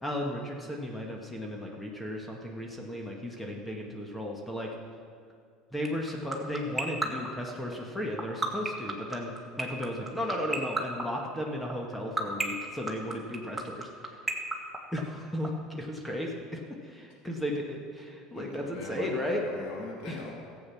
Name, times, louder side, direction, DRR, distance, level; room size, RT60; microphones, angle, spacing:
voice 1, 0.0-4.7 5.7-9.3 9.6-13.9 14.9-19.4 20.0-20.2, left 1 dB, 10° left, 0 dB, 1.8 m, -35 dB
sound 1, 5.8-15.5, right 2 dB, 10° right, 1.7 m, -29 dB
voice 2, 18.3-20.3, left 2 dB, 65° left, -1 dB, 2.9 m, -41 dB
14.0 x 8.2 x 5.9 m, 2.2 s
supercardioid pair, 95°, 0 cm